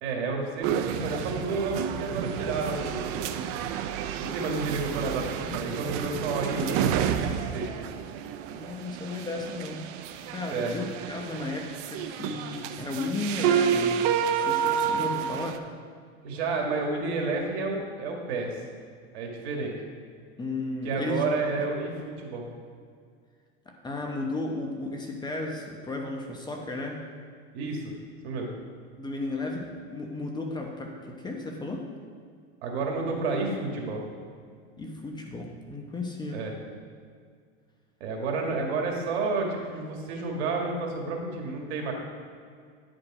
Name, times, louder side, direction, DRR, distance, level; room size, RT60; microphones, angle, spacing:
voice 1, 0.0-3.3 4.2-7.7 10.5-10.7 16.2-18.6 19.1-19.7 20.8-22.4 27.5-27.9 28.2-28.5 32.6-34.0 36.3-36.5 38.0-41.9, right 3 dB, 75° right, 1 dB, 1.9 m, -30 dB
sound 1, 0.6-15.6, right 8 dB, 55° right, 0.6 m, -30 dB
voice 2, 8.5-9.9 10.3-14.0 14.3-15.6 20.4-21.7 23.7-27.0 29.0-31.9 34.8-36.4, left 2 dB, 15° left, 1 dB, 0.9 m, -34 dB
10.5 x 5.2 x 4.8 m, 2.1 s
supercardioid pair, 130°, 32 cm